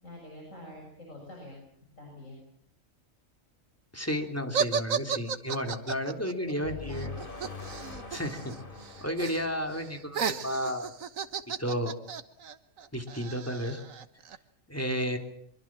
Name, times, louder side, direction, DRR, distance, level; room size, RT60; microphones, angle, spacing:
voice 1, 0.0-1.6 2.0-2.4 6.5-7.0, left 1 dB, 75° left, 0 dB, 7.4 m, -46 dB
voice 2, 3.9-7.1 8.1-8.5 9.0-10.9 11.6-12.0 12.9-13.8 14.7-15.2, equal, 10° left, 4 dB, 3.2 m, -32 dB
sound 1, 4.5-8.6 8.8-9.4 9.7-14.4, right 6 dB, 85° right, 1.6 m, -34 dB
sound 2, 6.6-10.7, left 3 dB, 40° left, 3.3 m, -43 dB
24.5 x 23.5 x 7.5 m, 0.69 s
omnidirectional pair, 1.4 m